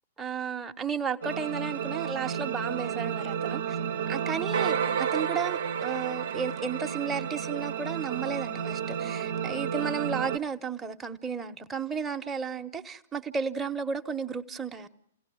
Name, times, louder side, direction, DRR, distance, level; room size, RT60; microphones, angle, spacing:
voice 1, 0.2-3.8 4.1-14.9, right 6 dB, 10° right, 0.9 m, -33 dB
sound 1, 1.2-10.4, right 7 dB, 65° right, 0.8 m, -31 dB
29.0 x 16.5 x 7.7 m
figure-of-eight pair, 115°, 0 cm